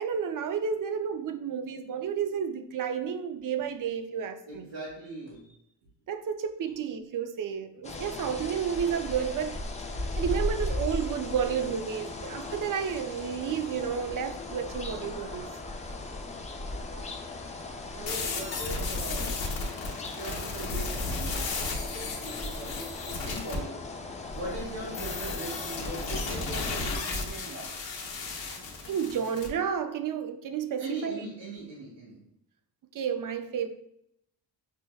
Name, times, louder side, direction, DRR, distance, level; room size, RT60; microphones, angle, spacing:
voice 1, 0.0-4.7 6.1-9.6 10.2-15.5 28.9-31.2 32.9-33.7, right 7 dB, 50° right, 0.4 m, -31 dB
voice 2, 4.5-5.5 15.8-16.0 16.6-17.0 17.6-19.4 20.0-23.9 24.3-27.7 30.8-32.2, right 2 dB, 75° right, 1.1 m, -40 dB
sound 1, 7.8-26.9, left 2 dB, 15° left, 0.3 m, -37 dB
sound 2, 18.1-23.6 24.9-29.5, left 3 dB, 80° left, 0.8 m, -34 dB
5.6 x 2.0 x 2.3 m
cardioid pair, 60°, 45 cm